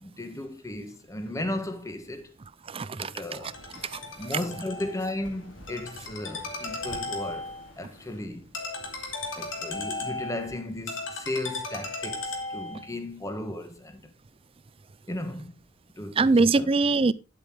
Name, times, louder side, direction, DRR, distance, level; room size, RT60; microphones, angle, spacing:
voice 1, 0.0-2.3 2.9-3.5 4.2-8.5 9.4-14.1 15.1-15.6 16.0-16.7, left 1 dB, 15° left, 1.2 m, -35 dB
voice 2, 2.6-3.5 3.8-4.0 4.3-4.4 16.2-17.1, right 3 dB, 30° right, 0.4 m, -23 dB
Ringtone, 3.3-12.9, left 3 dB, 85° left, 2.6 m, -36 dB
10.0 x 8.1 x 3.8 m
head